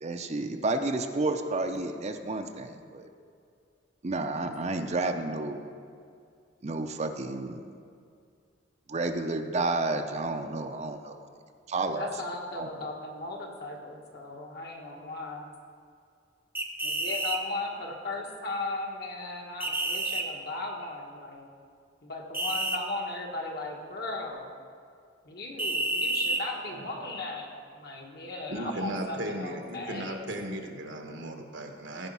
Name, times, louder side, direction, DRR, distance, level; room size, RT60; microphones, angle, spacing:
voice 1, 0.0-3.1 4.0-5.7 6.6-7.6 8.9-11.2 11.7-12.1 12.5-12.7, right 2 dB, 35° right, 6 dB, 0.6 m, -31 dB
voice 2, 11.9-15.5 16.8-21.5 22.0-24.5 25.2-30.2, left 2 dB, 60° left, 0 dB, 1.5 m, -37 dB
sound 1, 16.6-17.4 19.6-20.3 22.3-22.8 25.6-26.4, right 2 dB, 10° right, 0.8 m, -29 dB
voice 3, 28.5-32.1, right 1 dB, 75° right, 4 dB, 1.1 m, -36 dB
14.5 x 5.1 x 5.5 m, 2.3 s
head